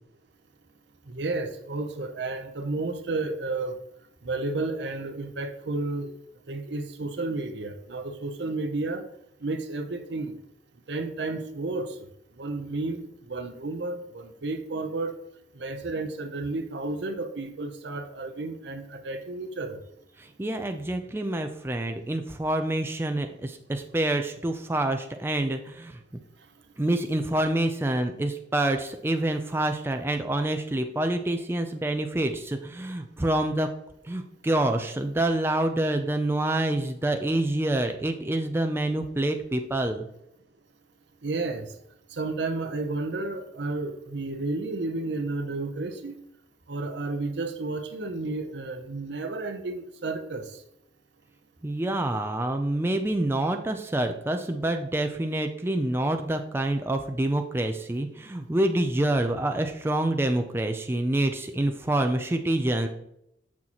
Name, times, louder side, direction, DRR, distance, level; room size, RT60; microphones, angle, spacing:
voice 1, 1.1-3.7 4.2-6.1 6.5-9.1 9.4-10.3 10.9-11.9 12.4-15.1 15.6-19.8 41.2-41.7 42.1-46.2 46.7-50.4, right 2 dB, 70° right, 7 dB, 0.7 m, -32 dB
voice 2, 20.2-26.0 26.8-33.7 34.0-40.1 51.6-62.9, right 1 dB, 15° right, 5 dB, 0.4 m, -27 dB
7.2 x 6.3 x 3.0 m, 0.78 s
head